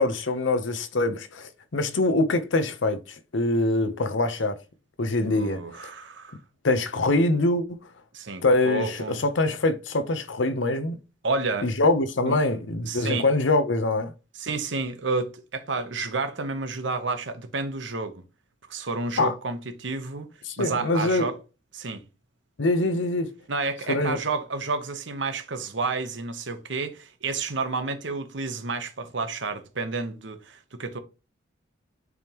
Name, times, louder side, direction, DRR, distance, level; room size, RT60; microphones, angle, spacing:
voice 1, 0.0-4.6 5.0-5.9 6.6-7.8 8.4-11.0 11.6-14.1 19.2-19.3 20.5-21.3 22.6-23.3 23.9-24.2, left 2 dB, 70° left, 0.7 m, -24 dB
voice 2, 5.3-6.4 8.1-9.2 11.2-11.7 12.2-12.4 12.9-13.3 14.4-18.2 18.7-20.3 20.6-21.3 21.7-22.0 23.5-31.0, right 3 dB, 65° right, 1.0 m, -30 dB
9.4 x 3.5 x 2.9 m
head